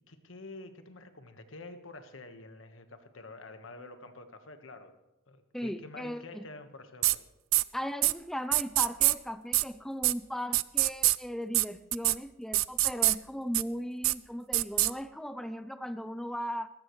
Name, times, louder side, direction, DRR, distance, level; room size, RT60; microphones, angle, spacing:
voice 1, 0.1-5.0 5.3-7.2, left 2 dB, 75° left, 8 dB, 1.4 m, -48 dB
voice 2, 5.5-6.5 7.7-16.7, equal, ahead, 11 dB, 0.4 m, -37 dB
sound 1, 7.0-7.2 7.5-7.6 8.0-8.1 8.5-9.1 9.5-9.6 10.0-10.1 10.5-11.2 11.5-11.6 11.9-12.2 12.5-13.2 13.5-13.6 14.0-14.1 14.5-14.9, right 19 dB, 85° right, 0.4 m, -24 dB
19.5 x 15.0 x 3.2 m, 0.97 s
head